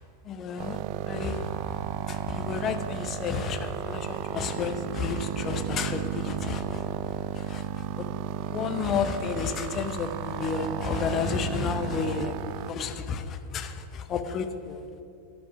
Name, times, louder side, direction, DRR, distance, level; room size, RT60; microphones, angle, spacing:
voice 1, 0.2-0.8 1.1-1.5 2.0-6.8 7.3-7.6 8.5-12.3 12.7-14.8, left 6 dB, 30° left, 8 dB, 0.7 m, -31 dB
sound 1, 0.6-12.7, right 10 dB, 45° right, 0.3 m, -33 dB
13.5 x 5.3 x 5.8 m, 2.6 s
figure-of-eight pair, 90°, 0 cm